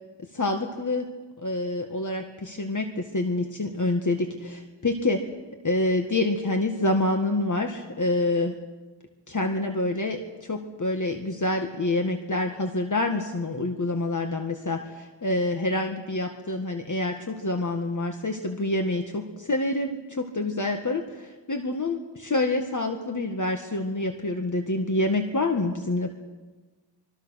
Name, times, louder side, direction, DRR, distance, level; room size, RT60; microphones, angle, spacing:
voice 1, 0.3-1.1 1.4-5.2 5.6-8.5 9.3-26.1, left 2 dB, 45° left, 4 dB, 1.8 m, -27 dB
25.5 x 23.5 x 6.5 m, 1.3 s
wide cardioid pair, 80°, 42 cm